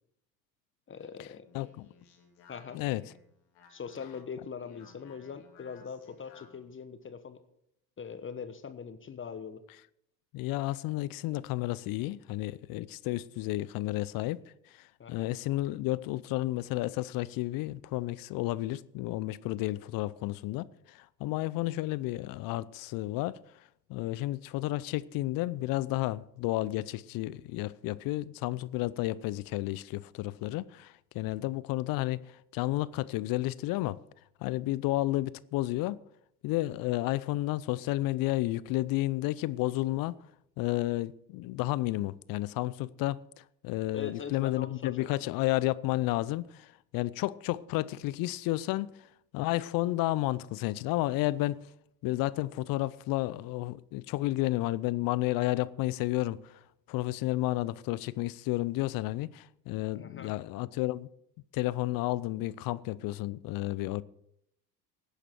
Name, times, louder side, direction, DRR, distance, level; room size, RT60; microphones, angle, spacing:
voice 1, 0.9-1.5 2.5-2.8 3.7-7.4 8.0-9.6 15.0-15.3 43.9-45.1 59.9-60.3, left 6 dB, 25° left, 1.1 m, -42 dB
Speech, 1.3-6.7, left 5 dB, 65° left, 3.2 m, -58 dB
voice 2, 1.5-1.9 2.7-3.0 10.3-14.4 14.8-23.4 23.9-32.2 32.5-34.0 34.4-36.0 36.4-40.2 40.6-48.9 49.3-51.7 52.0-56.6 56.9-61.1 61.5-64.0, left 17 dB, 45° left, 0.6 m, -31 dB
17.0 x 9.9 x 4.5 m
hypercardioid pair, 70°, 49 cm